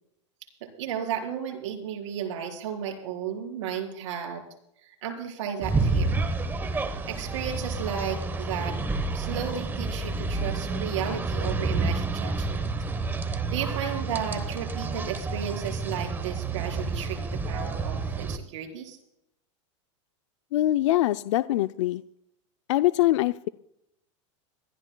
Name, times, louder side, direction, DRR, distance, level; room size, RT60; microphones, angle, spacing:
voice 1, 0.6-4.4 4.8-6.2 7.1-8.8 9.1-12.7 13.3-19.0, right 8 dB, 70° right, 2 dB, 4.5 m, -34 dB
sound 1, 5.6-18.4, right 3 dB, 15° right, 1.1 m, -29 dB
voice 2, 20.5-22.0 22.7-23.5, left 15 dB, 75° left, 11 dB, 0.5 m, -23 dB
26.5 x 13.5 x 2.3 m, 0.77 s
supercardioid pair, 140°, 16 cm